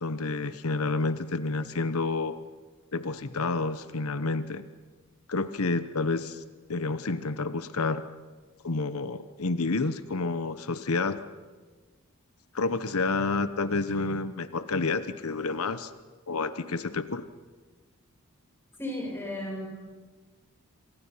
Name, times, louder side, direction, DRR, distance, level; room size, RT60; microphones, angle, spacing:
voice 1, 0.0-2.4 2.9-4.6 5.3-6.4 6.7-8.0 8.6-11.2 12.5-15.9 16.3-17.2, left 3 dB, 75° left, 12 dB, 1.0 m, -29 dB
voice 2, 18.8-19.7, left 1 dB, 10° left, -2 dB, 7.9 m, -34 dB
27.5 x 26.0 x 5.8 m, 1.4 s
head